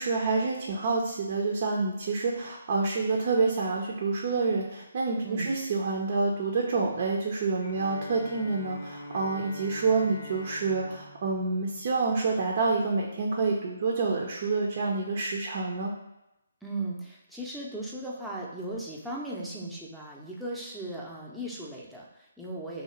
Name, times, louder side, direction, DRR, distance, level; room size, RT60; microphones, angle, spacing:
voice 1, 0.0-15.9, right 4 dB, 45° right, -1 dB, 0.6 m, -28 dB
Bowed string instrument, 7.6-12.5, left 1 dB, 50° left, 0.7 m, -45 dB
voice 2, 16.6-22.8, right 1 dB, ahead, -5 dB, 0.7 m, -37 dB
3.1 x 2.8 x 4.3 m, 0.90 s
figure-of-eight pair, 145°, 0 cm